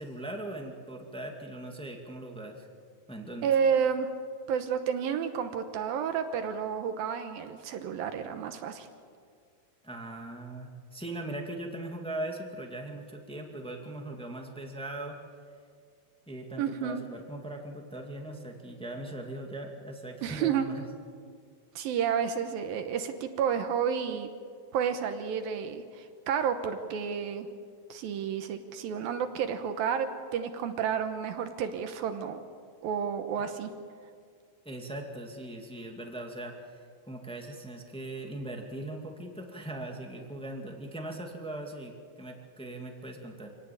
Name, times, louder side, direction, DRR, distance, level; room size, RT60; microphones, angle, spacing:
voice 1, 0.0-2.7 3.1-3.5 9.8-15.2 16.3-20.9 33.4-33.5 34.6-36.8 37.1-43.5, right 1 dB, 5° left, 2 dB, 0.9 m, -40 dB
voice 2, 3.4-4.1 4.5-8.9 16.6-17.0 20.2-20.7 21.8-24.3 24.7-27.5 27.9-32.4 32.8-33.7, right 7 dB, 75° right, 7 dB, 2.8 m, -30 dB
26.5 x 18.0 x 8.7 m, 2.2 s
omnidirectional pair, 4.4 m